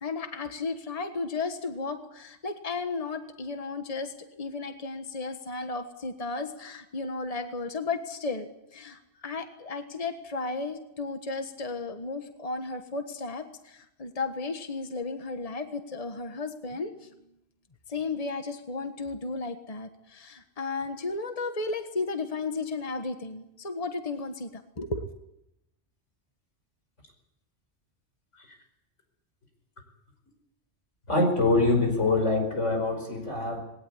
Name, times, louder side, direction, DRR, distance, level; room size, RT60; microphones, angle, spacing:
voice 1, 0.0-17.1 17.9-25.1, left 3 dB, 30° left, 7 dB, 1.5 m, -34 dB
voice 2, 31.1-33.6, left 2 dB, 85° left, 4 dB, 5.6 m, -24 dB
20.5 x 18.0 x 9.9 m, 0.83 s
omnidirectional pair, 1.2 m